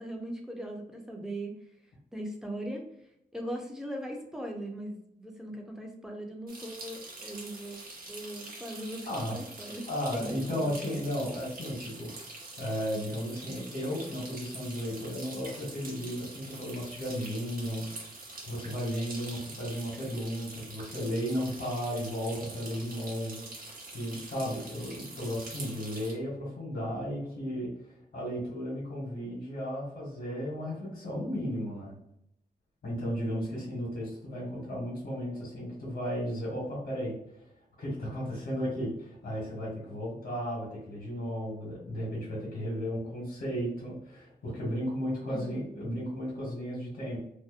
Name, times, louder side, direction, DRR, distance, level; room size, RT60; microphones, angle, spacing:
voice 1, 0.0-1.6 2.1-2.9 3.3-7.8 8.1-11.0 45.3-45.7, right 1 dB, 5° right, 1 dB, 0.4 m, -39 dB
sound 1, 6.5-26.1, right 2 dB, 65° right, 0.7 m, -45 dB
voice 2, 9.1-9.4 9.9-12.1 12.6-17.9 18.4-31.9 32.8-37.1 37.8-47.2, equal, 80° left, -5 dB, 1.1 m, -34 dB
2.6 x 2.0 x 2.4 m, 0.76 s
wide cardioid pair, 130°, 16 cm